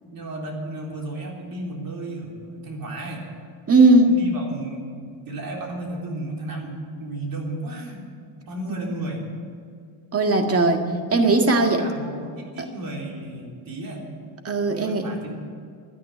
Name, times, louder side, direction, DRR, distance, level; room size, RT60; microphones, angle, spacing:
voice 1, 0.0-3.2 4.1-8.1 8.5-9.3 11.2-14.1 14.7-15.4, right 1 dB, 45° right, 0 dB, 3.8 m, -34 dB
voice 2, 3.7-4.1 10.1-10.8 11.1-11.8 14.5-15.1, right 2 dB, 30° right, 4 dB, 1.9 m, -17 dB
12.0 x 10.0 x 9.8 m, 2.2 s
cardioid pair, 105°, 48 cm